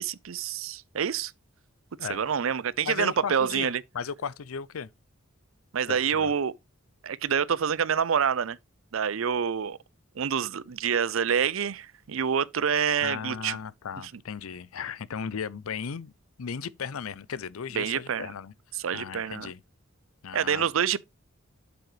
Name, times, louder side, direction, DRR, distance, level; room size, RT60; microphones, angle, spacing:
voice 1, 0.0-1.3 2.0-3.8 5.7-6.5 7.0-8.6 8.9-9.8 10.2-13.6 17.7-18.3 18.7-19.5 20.3-21.0, right 7 dB, 75° right, 0.5 m, -27 dB
voice 2, 2.8-4.9 5.9-6.3 13.0-16.1 16.4-18.5 18.9-19.6 20.2-20.7, left 6 dB, 85° left, 0.5 m, -36 dB
7.8 x 6.9 x 3.2 m
head